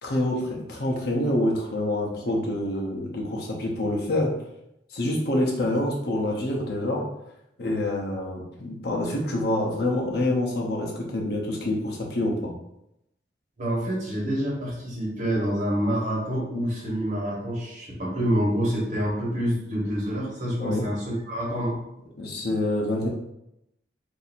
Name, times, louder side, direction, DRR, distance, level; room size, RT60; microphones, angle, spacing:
voice 1, 0.0-4.3 4.9-7.0 7.6-12.5 20.6-20.9 22.2-23.1, left 1 dB, 60° left, -1 dB, 0.8 m, -26 dB
voice 2, 13.6-21.8, equal, 40° right, -5 dB, 1.3 m, -27 dB
2.7 x 2.7 x 4.1 m, 0.82 s
head